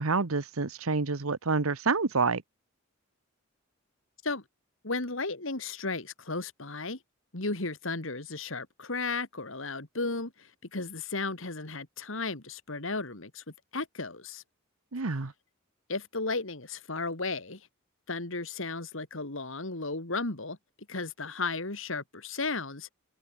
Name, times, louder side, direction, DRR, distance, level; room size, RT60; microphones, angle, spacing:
voice 1, 0.0-2.4 14.9-15.3, right 4 dB, 85° right, 1.1 m, -28 dB
voice 2, 4.8-7.0 7.3-13.4 13.7-14.4 15.9-17.7 18.1-20.6 20.9-22.9, left 3 dB, 65° left, 2.6 m, -34 dB
open air
head